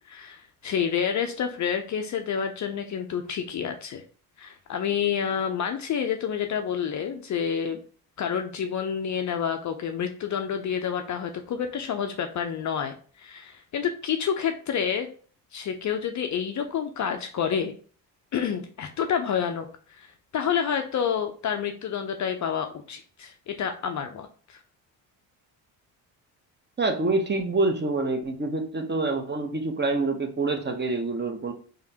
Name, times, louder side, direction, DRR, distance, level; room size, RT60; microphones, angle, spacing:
voice 1, 0.1-4.0 4.4-7.8 8.2-15.1 15.5-17.7 18.3-19.7 20.0-24.6, left 7 dB, 35° left, 6 dB, 0.5 m, -29 dB
voice 2, 26.8-31.5, right 3 dB, 20° right, 5 dB, 0.7 m, -26 dB
4.9 x 2.6 x 2.8 m, 0.43 s
hypercardioid pair, 50°, 49 cm